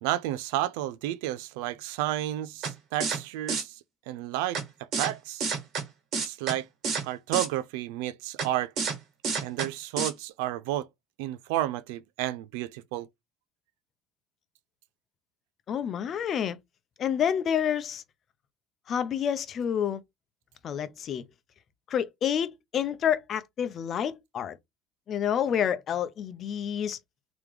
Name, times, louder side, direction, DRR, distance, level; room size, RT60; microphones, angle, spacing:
voice 1, 0.0-3.7 4.1-5.5 6.2-6.7 7.0-8.7 9.4-10.9 11.2-13.1, right 14 dB, 85° right, 0.4 m, -31 dB
sound 1, 2.6-2.7 3.0-3.2 3.5-3.6 4.5-4.6 4.9-5.1 5.4-5.8 6.1-6.5 6.8-7.0 7.3-7.5 8.4-8.5 8.8-8.9 9.2-9.7 10.0-10.1, right 5 dB, 55° right, 1.8 m, -29 dB
voice 2, 15.7-16.6 17.0-18.0 18.9-20.0 20.6-21.2 21.9-24.6 25.1-27.0, left 8 dB, 45° left, 0.7 m, -28 dB
3.3 x 3.0 x 3.5 m
supercardioid pair, 105°, 0 cm